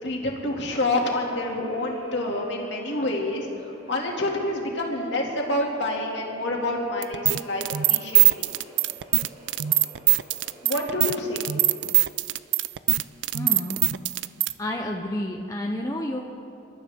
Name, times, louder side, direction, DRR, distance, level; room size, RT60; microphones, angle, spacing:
voice 1, 0.0-3.5 3.9-8.5 10.6-11.4, left 1 dB, 60° left, -1 dB, 2.4 m, -27 dB
sound 1, 0.6-11.9, equal, 30° right, 2.6 m, -49 dB
sound 2, 7.0-14.5, right 17 dB, 65° right, 0.4 m, -21 dB
voice 2, 13.3-13.9 14.6-16.2, left 1 dB, 15° left, 1 dB, 0.7 m, -30 dB
27.0 x 13.0 x 3.6 m, 2.6 s
head